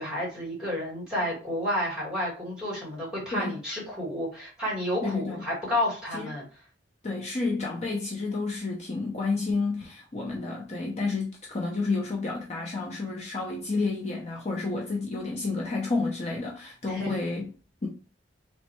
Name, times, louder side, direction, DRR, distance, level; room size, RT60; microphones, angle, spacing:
voice 1, 0.0-6.4 16.9-17.1, left 1 dB, 5° right, 2.0 m, -31 dB
voice 2, 3.3-3.6 5.0-5.4 6.1-6.3 7.0-17.5 17.8-17.9, left 3 dB, 40° left, 0.6 m, -30 dB
3.2 x 3.1 x 3.0 m
head